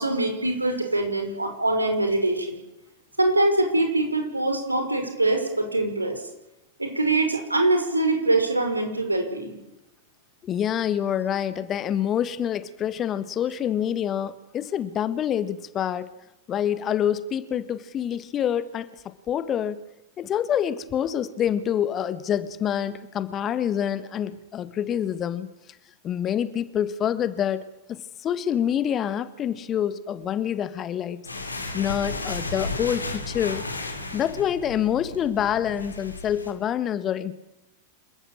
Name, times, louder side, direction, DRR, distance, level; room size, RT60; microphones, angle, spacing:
voice 1, 0.0-2.6 3.2-6.2 6.8-9.6, right 2 dB, 85° right, 5 dB, 5.5 m, -23 dB
voice 2, 10.4-16.1 16.5-18.9 19.3-19.8 20.2-25.5 26.0-31.3 31.7-33.7 34.1-37.3, left 9 dB, 30° left, 14 dB, 1.6 m, -26 dB
sound 1, 31.2-36.5, left 3 dB, 80° left, 3.6 m, -34 dB
27.5 x 14.5 x 9.0 m, 0.93 s
figure-of-eight pair, 90°, 0 cm